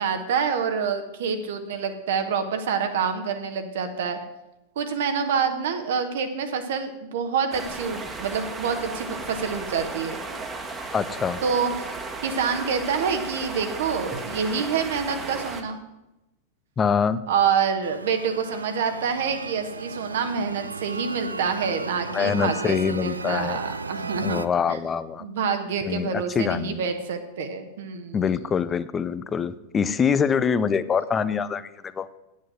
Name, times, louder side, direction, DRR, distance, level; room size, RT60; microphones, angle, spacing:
voice 1, 0.0-4.2 4.8-10.2 11.4-11.9 12.2-15.9 17.3-24.8 25.2-28.2, right 6 dB, 55° right, 7 dB, 1.1 m, -27 dB
sound 1, 7.5-15.6, right 3 dB, 15° right, 1.3 m, -35 dB
voice 2, 10.9-11.4 16.8-17.2 22.1-23.6 24.2-25.2 25.8-26.8 28.1-32.1, left 6 dB, 20° left, 15 dB, 0.5 m, -24 dB
sound 2, 17.8-24.5, right 4 dB, 80° right, 0.3 m, -35 dB
9.2 x 8.5 x 6.2 m, 0.93 s
figure-of-eight pair, 90°, 0 cm